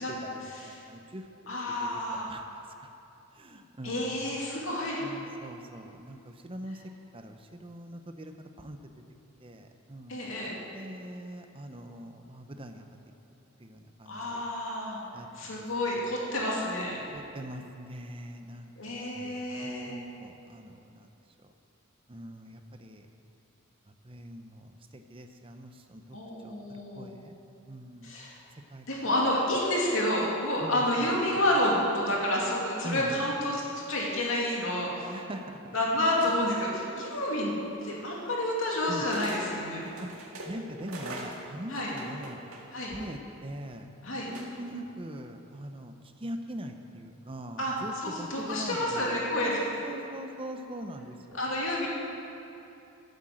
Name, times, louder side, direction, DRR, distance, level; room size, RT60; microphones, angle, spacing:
voice 1, 0.0-0.4 0.9-1.3 1.8-2.9 3.3-4.2 5.0-6.8 7.1-8.9 9.4-10.2 10.7-13.0 13.6-14.4 15.1-15.7 16.0-16.1 17.1-21.1 21.4-21.5 22.1-23.1 23.9-26.2 26.4-27.4 27.7-28.1 28.7-29.1 30.6-31.1 32.8-33.2 35.0-35.4 38.9-39.1 39.8-42.4 42.9-43.9 44.3-49.1 49.4-51.4, equal, 25° right, 6 dB, 0.7 m, -42 dB
voice 2, 1.5-2.3 3.8-5.0 10.1-10.6 14.1-15.0 15.3-17.0 18.8-20.0 26.1-27.1 28.0-28.3 28.9-33.6 33.9-35.1 35.7-37.5 37.8-39.8 41.7-41.9 42.7-42.9 44.0-44.3 47.6-47.7 48.0-49.6 51.3-51.9, left 1 dB, 65° left, -4 dB, 2.7 m, -29 dB
sound 1, 36.2-36.7 37.8-37.9 39.1-39.4 39.8-43.0 44.3-44.8, right 2 dB, 80° right, 2.0 m, -42 dB
11.5 x 9.0 x 7.6 m, 2.8 s
head